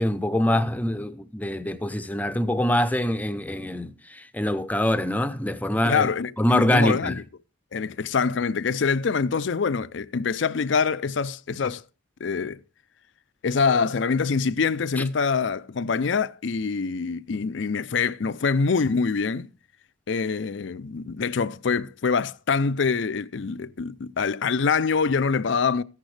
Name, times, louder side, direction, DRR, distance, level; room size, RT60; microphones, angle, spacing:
voice 1, 0.0-6.1 6.4-7.2 15.0-15.1, left 1 dB, 10° left, 0.7 m, -24 dB
voice 2, 5.8-7.2 7.7-11.8 12.2-12.6 13.4-19.5 20.1-25.8, left 5 dB, 65° left, 0.5 m, -25 dB
14.5 x 10.5 x 3.3 m
head